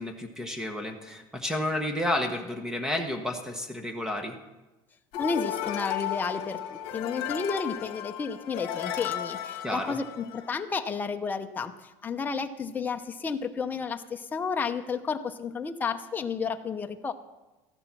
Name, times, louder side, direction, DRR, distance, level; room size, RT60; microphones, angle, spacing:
voice 1, 0.0-4.4 9.6-10.0, left 1 dB, 5° right, 5 dB, 1.1 m, -31 dB
sound 1, 5.1-10.6, left 12 dB, 60° left, 1.3 m, -34 dB
voice 2, 5.2-17.1, left 5 dB, 15° left, 5 dB, 0.8 m, -32 dB
14.0 x 12.0 x 6.0 m, 1.1 s
cardioid pair, 145°, 11 cm